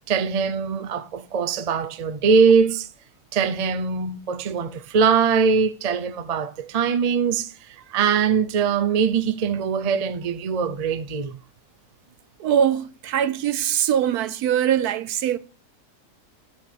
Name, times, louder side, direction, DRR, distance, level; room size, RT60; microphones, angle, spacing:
voice 1, 0.1-2.9 3.3-11.4, right 6 dB, 35° right, 0.6 m, -22 dB
voice 2, 12.4-15.4, right 9 dB, 80° right, 1.2 m, -22 dB
13.5 x 6.0 x 8.5 m
omnidirectional pair, 1.6 m